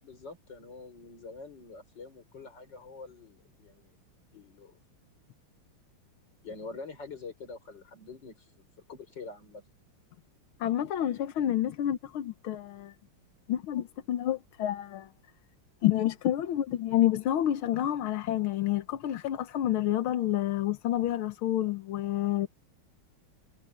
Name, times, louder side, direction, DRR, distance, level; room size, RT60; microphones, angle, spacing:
voice 1, 0.0-4.0 4.3-4.8 6.4-9.6, left 4 dB, 55° left, 5.7 m, -45 dB
voice 2, 10.6-12.9 13.5-15.1 15.8-22.5, left 12 dB, 80° left, 1.8 m, -29 dB
omnidirectional pair, 2.3 m